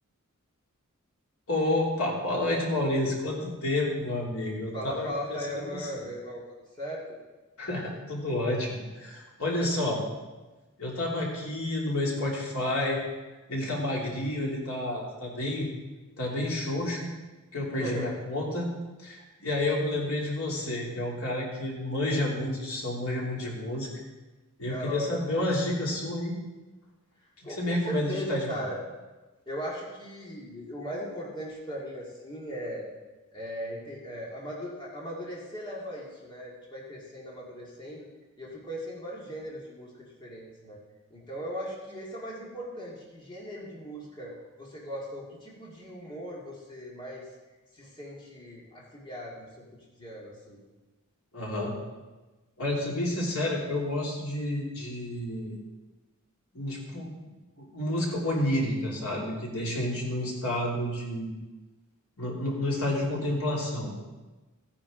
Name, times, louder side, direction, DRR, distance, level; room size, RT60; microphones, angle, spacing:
voice 1, 1.5-5.9 7.6-10.0 10.8-13.0 13.5-15.7 16.2-17.1 17.5-18.7 19.0-23.9 24.6-26.4 27.4-28.4 51.3-51.7 52.6-55.5 56.5-57.1 57.6-61.3 62.2-63.9, left 1 dB, 75° left, -3 dB, 3.1 m, -30 dB
voice 2, 4.7-6.4 6.8-7.2 17.8-18.2 24.6-25.4 27.4-28.8 29.5-32.9 33.3-38.1 38.4-40.8 41.1-47.3 47.7-49.6 50.0-50.6, equal, 20° left, -4 dB, 2.0 m, -38 dB
15.5 x 10.0 x 3.9 m, 1.2 s
head